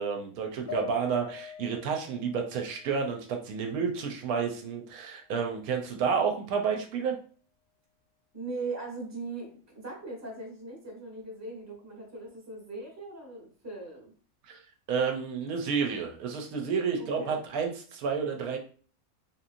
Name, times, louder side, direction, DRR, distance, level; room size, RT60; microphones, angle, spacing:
voice 1, 0.0-7.2 14.5-14.6 14.9-18.6, right 6 dB, 85° right, 3 dB, 1.1 m, -30 dB
sound 1, 0.7-4.1 4.5-5.5, left 8 dB, 80° left, 1.0 m, -46 dB
voice 2, 8.3-14.1 17.0-17.4, right 3 dB, 15° right, -2 dB, 0.8 m, -40 dB
2.9 x 2.6 x 2.5 m, 0.42 s
omnidirectional pair, 1.5 m